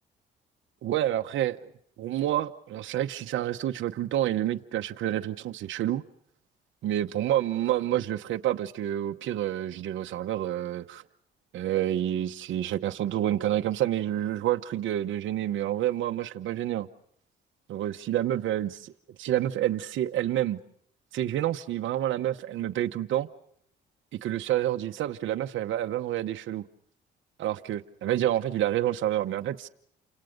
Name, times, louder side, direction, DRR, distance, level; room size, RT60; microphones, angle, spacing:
voice 1, 0.8-1.7 2.0-6.0 6.8-11.0 11.5-16.9 17.7-18.9 19.2-20.6 21.1-23.3 24.2-26.6 27.4-29.7, right 12 dB, 75° right, 0.9 m, -28 dB
29.0 x 26.5 x 5.2 m
cardioid pair, 90°, 20 cm